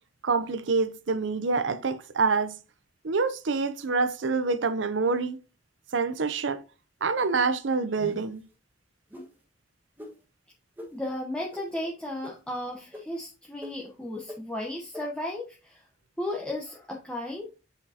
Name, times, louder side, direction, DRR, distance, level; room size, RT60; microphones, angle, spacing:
voice 1, 0.2-2.6 3.0-5.4 5.9-6.6 7.0-8.4, right 4 dB, 80° right, 0.7 m, -26 dB
sound 1, 8.0-8.4 9.1-9.3 10.0-10.1 10.8-10.9 11.5-11.6 12.2-12.3 12.9-13.0 13.6-13.7 14.3-14.4 14.9-15.0, left 1 dB, 10° right, 1.5 m, -41 dB
voice 2, 10.9-15.8 16.2-17.5, left 1 dB, 5° left, 1.0 m, -34 dB
8.4 x 5.2 x 2.8 m
head